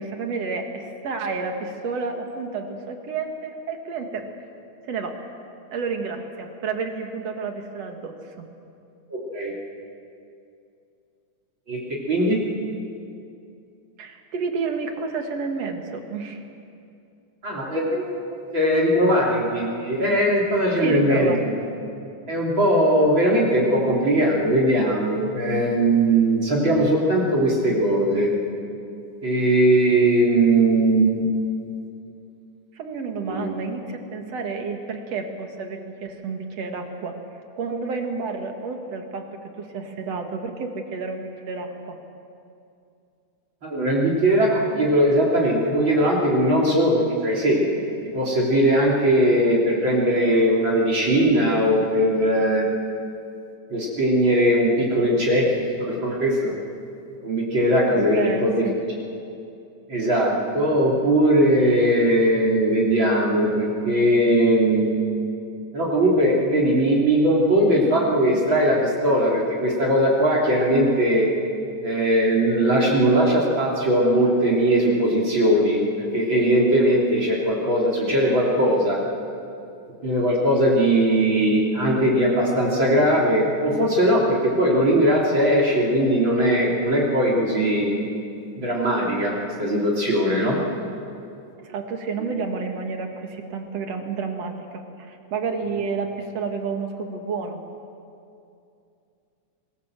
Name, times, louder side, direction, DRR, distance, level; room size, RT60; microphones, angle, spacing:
voice 1, 0.0-4.3 4.8-5.1 5.7-8.5 14.0-16.4 20.8-21.4 32.7-37.1 37.6-39.3 39.6-42.0 57.9-58.8 91.6-97.6, right 4 dB, 60° right, 4 dB, 2.9 m, -30 dB
voice 2, 9.1-9.5 11.7-12.4 17.4-21.5 22.3-28.3 29.2-31.3 33.2-33.5 43.6-52.6 53.7-56.6 57.2-58.6 59.9-64.9 65.7-71.3 71.8-79.0 80.0-87.9 88.6-90.6 92.2-92.3, right 1 dB, 40° right, -3 dB, 4.0 m, -20 dB
26.0 x 21.0 x 7.5 m, 2.6 s
omnidirectional pair, 3.4 m